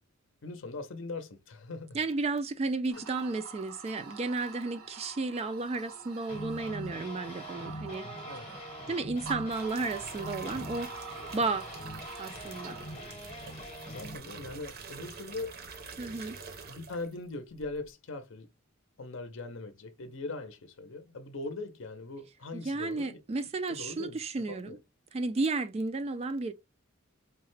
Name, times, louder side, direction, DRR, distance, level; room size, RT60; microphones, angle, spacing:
voice 1, 0.4-2.0 2.9-3.0 8.0-8.4 11.1-11.4 13.9-15.6 16.7-18.5 19.0-23.2 23.7-24.2 24.4-24.8, left 3 dB, 60° left, 0.6 m, -41 dB
voice 2, 1.9-8.1 8.9-11.7 12.2-12.8 16.0-16.4 22.5-24.8 25.1-26.5, right 3 dB, 30° right, 0.3 m, -33 dB
sound 1, 2.9-13.1, right 5 dB, 85° right, 1.0 m, -46 dB
sound 2, 6.3-14.2, equal, 30° left, 0.8 m, -43 dB
sound 3, 9.2-17.2 17.5-17.9, right 4 dB, 45° right, 0.7 m, -47 dB
4.7 x 2.1 x 3.1 m
head